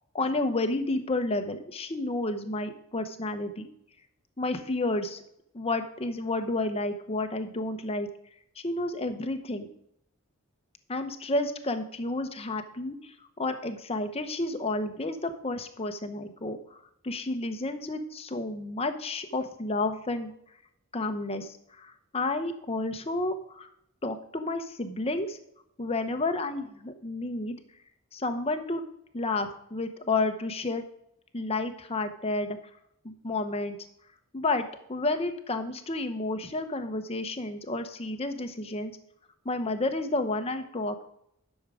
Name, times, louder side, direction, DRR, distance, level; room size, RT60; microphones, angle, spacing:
voice 1, 0.1-3.7 4.4-5.2 5.5-8.1 8.6-9.7 10.9-20.3 20.9-23.7 24.0-25.4 25.8-27.6 28.1-28.8 29.1-30.8 31.3-32.6 33.0-33.8 34.3-38.9 39.4-41.1, left 2 dB, 30° left, 8 dB, 0.9 m, -31 dB
10.5 x 6.5 x 4.9 m, 0.74 s
head